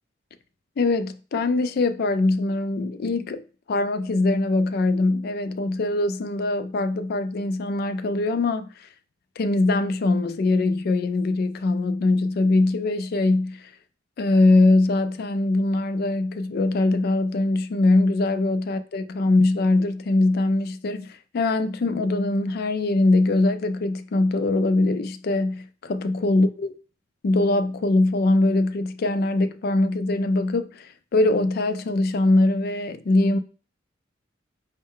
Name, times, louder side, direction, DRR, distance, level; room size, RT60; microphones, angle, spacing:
voice 1, 0.8-3.4 3.7-8.9 9.4-13.7 14.2-26.7 27.2-33.4, left 2 dB, 55° left, 0.3 m, -22 dB
5.3 x 2.1 x 3.6 m
head